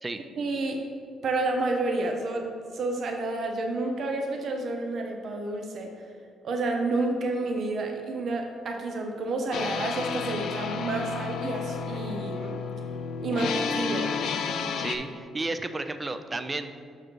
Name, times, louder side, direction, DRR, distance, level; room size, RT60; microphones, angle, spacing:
voice 1, 0.4-0.8 1.2-5.9 6.4-12.6 13.2-14.2, right 2 dB, 60° right, 3 dB, 0.7 m, -30 dB
sound 1, 9.5-15.0, left 5 dB, 75° left, 0.5 m, -31 dB
voice 2, 14.8-16.8, right 2 dB, 25° right, 9 dB, 0.4 m, -33 dB
6.1 x 4.9 x 4.6 m, 2.2 s
cardioid pair, 90°, 0 cm